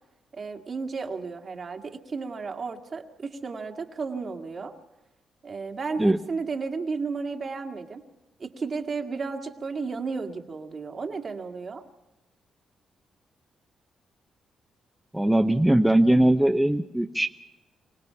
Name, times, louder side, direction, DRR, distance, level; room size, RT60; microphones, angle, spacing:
voice 1, 0.3-4.7 5.4-8.0 8.4-11.8, right 4 dB, 50° right, 4 dB, 2.0 m, -33 dB
voice 2, 15.1-17.3, right 1 dB, 5° right, 6 dB, 0.7 m, -20 dB
26.0 x 17.5 x 5.7 m, 1.0 s
cardioid pair, 75°, 0 cm